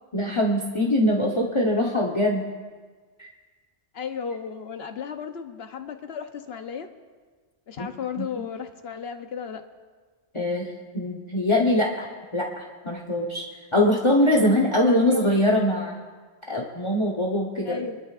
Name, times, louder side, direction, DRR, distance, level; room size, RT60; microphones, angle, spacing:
voice 1, 0.1-2.5 3.2-3.3 8.2-8.4 10.3-10.7 10.9-12.1 12.3-13.4 13.7-15.9 16.5-17.9, left 1 dB, 30° left, -1 dB, 1.1 m, -22 dB
voice 2, 3.9-6.9 7.7-9.6 14.4-14.5 14.8-15.4 17.6-18.0, left 7 dB, 65° left, 7 dB, 1.1 m, -34 dB
27.5 x 11.5 x 2.5 m, 1.5 s
omnidirectional pair, 1.1 m